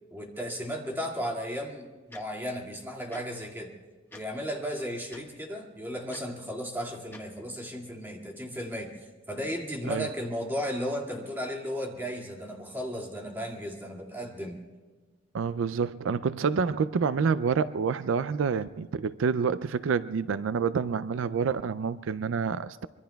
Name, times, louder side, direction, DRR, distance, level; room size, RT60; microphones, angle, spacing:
voice 1, 0.1-3.7 4.1-14.6, equal, 10° right, -1 dB, 2.1 m, -35 dB
Tick-tock, 2.1-2.2 3.1-3.2 4.1-4.2 5.1-5.2 6.1-6.2 7.1-7.2, left 2 dB, 10° left, 1.3 m, -46 dB
voice 2, 15.3-22.9, right 5 dB, 75° right, 15 dB, 0.4 m, -28 dB
25.0 x 23.5 x 2.3 m, 1.4 s
head